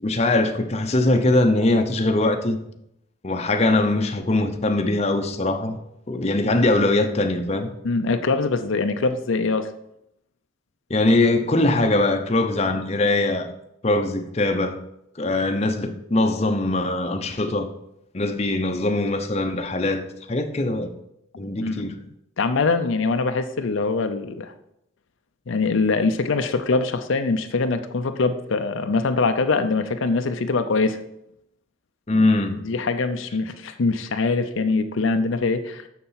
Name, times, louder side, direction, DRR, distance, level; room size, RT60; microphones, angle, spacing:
voice 1, 0.0-2.6 3.2-5.8 6.1-7.7 10.9-13.5 13.8-14.8 15.2-17.7 18.1-20.9 21.4-21.9 32.1-32.6, left 2 dB, 30° left, 6 dB, 0.7 m, -21 dB
voice 2, 7.8-9.7 21.6-21.9 22.4-24.5 25.5-31.0 32.6-35.8, left 3 dB, 75° left, 8 dB, 0.6 m, -23 dB
6.9 x 6.8 x 5.6 m, 0.79 s
head